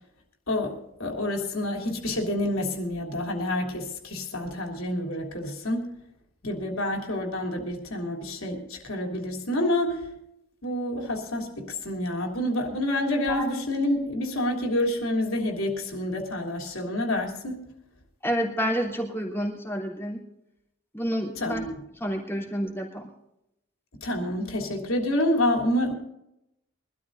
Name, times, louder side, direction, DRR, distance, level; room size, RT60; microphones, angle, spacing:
voice 1, 0.5-5.9 6.4-10.1 10.6-17.6 21.4-21.8 24.0-25.9, left 1 dB, 75° left, 2 dB, 3.3 m, -28 dB
voice 2, 18.2-20.2 20.9-21.6 22.0-23.0, equal, 10° left, -1 dB, 3.1 m, -29 dB
24.0 x 13.0 x 2.7 m, 0.83 s
head